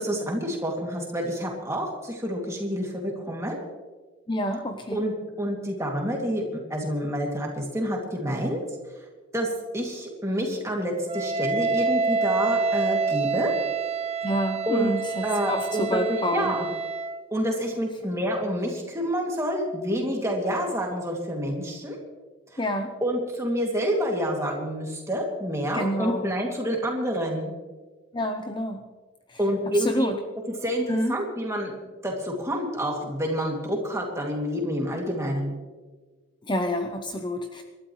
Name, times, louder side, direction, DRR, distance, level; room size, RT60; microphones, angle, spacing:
voice 1, 0.0-3.6 4.9-8.6 9.3-13.5 14.7-14.9 15.2-16.7 17.3-22.0 22.5-22.6 23.0-27.5 29.4-30.1 30.5-31.7 32.0-35.6, equal, 15° right, -1 dB, 2.5 m, -28 dB
voice 2, 4.3-5.0 14.2-16.6 22.6-22.9 25.7-26.2 28.1-28.8 29.3-29.4 29.7-30.2 30.9-31.1 36.5-37.6, left 1 dB, 20° left, 5 dB, 0.8 m, -28 dB
Wind instrument woodwind instrument, 11.1-17.2, right 4 dB, 30° right, 0.7 m, -27 dB
27.0 x 12.5 x 3.2 m, 1.4 s
head